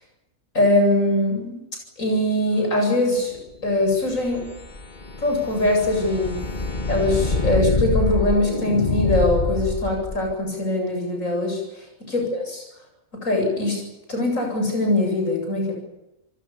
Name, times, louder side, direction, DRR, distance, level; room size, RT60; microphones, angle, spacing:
voice 1, 0.5-1.6 2.0-3.4 3.6-4.5 5.2-6.4 6.9-11.6 12.1-12.6 13.1-13.8 14.1-15.7, left 1 dB, 75° left, 2 dB, 8.4 m, -22 dB
sound 1, 4.0-10.3, left 3 dB, 35° left, 1.9 m, -25 dB
29.5 x 23.0 x 7.2 m, 0.93 s
omnidirectional pair, 1.4 m